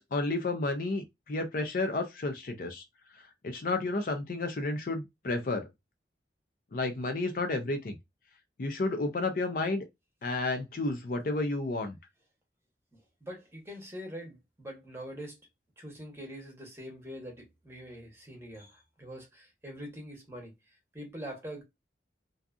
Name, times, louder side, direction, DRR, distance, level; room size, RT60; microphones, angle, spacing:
voice 1, 0.0-2.8 3.4-5.7 6.7-8.0 8.6-9.8 10.2-12.0, left 2 dB, 50° left, 0.4 m, -31 dB
voice 2, 13.2-15.4 15.8-21.6, equal, 15° right, 0.8 m, -44 dB
2.6 x 2.4 x 2.3 m
head